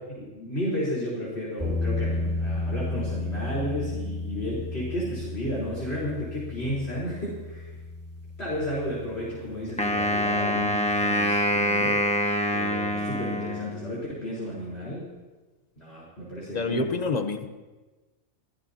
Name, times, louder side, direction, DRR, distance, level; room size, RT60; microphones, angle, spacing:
voice 1, 0.2-7.7 8.4-12.1 12.5-15.1 15.8-17.0, equal, 50° left, -8 dB, 4.5 m, -33 dB
sound 1, 1.6-10.5, left 2 dB, 10° right, 3.0 m, -33 dB
Wind instrument woodwind instrument, 9.8-14.1, left 1 dB, 5° left, 1.2 m, -25 dB
voice 2, 16.5-17.5, left 3 dB, 35° left, 8 dB, 1.0 m, -27 dB
27.0 x 16.0 x 2.9 m, 1.2 s
omnidirectional pair, 1.4 m